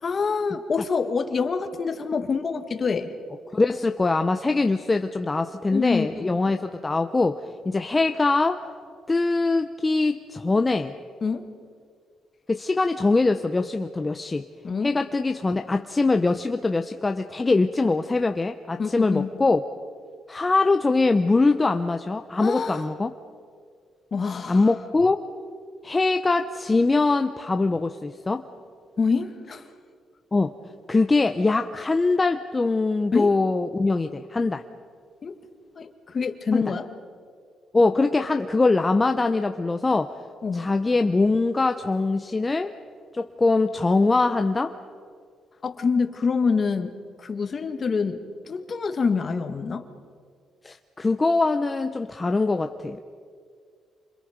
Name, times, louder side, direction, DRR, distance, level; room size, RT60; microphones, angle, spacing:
voice 1, 0.0-3.1 5.7-6.4 11.2-11.4 14.6-14.9 18.8-19.3 22.4-22.8 24.1-24.7 29.0-29.7 33.1-33.3 35.2-35.3 35.8-36.9 40.4-40.7 45.6-46.9 47.2-49.9, left 5 dB, 40° left, 7 dB, 1.9 m, -26 dB
voice 2, 3.5-8.6 9.1-10.9 12.5-14.5 14.8-19.6 20.3-23.1 24.5-25.2 25.8-28.4 30.3-30.5 30.9-34.6 36.5-36.7 37.7-40.1 40.5-42.7 43.1-44.7 50.6-53.0, left 3 dB, 20° left, 7 dB, 0.9 m, -22 dB
29.0 x 26.5 x 5.2 m, 2.1 s
cardioid pair, 90°, 0 cm